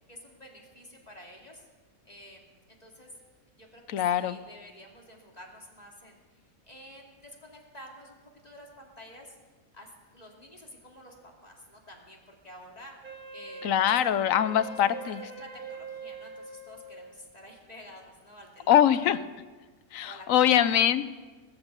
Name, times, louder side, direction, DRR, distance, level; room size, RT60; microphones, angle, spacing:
voice 1, 0.1-1.6 2.0-2.4 2.7-3.1 3.5-6.4 6.7-9.4 9.7-11.1 11.4-13.9 14.6-19.1 20.0-20.9, equal, 25° left, 0 dB, 2.7 m, -50 dB
voice 2, 3.9-4.4 13.6-15.2 18.7-19.2 19.9-21.2, left 10 dB, 70° left, 14 dB, 1.1 m, -23 dB
Wind instrument woodwind instrument, 13.0-17.3, right 2 dB, 80° right, 2.7 m, -43 dB
20.5 x 8.1 x 8.2 m, 1.3 s
omnidirectional pair, 1.5 m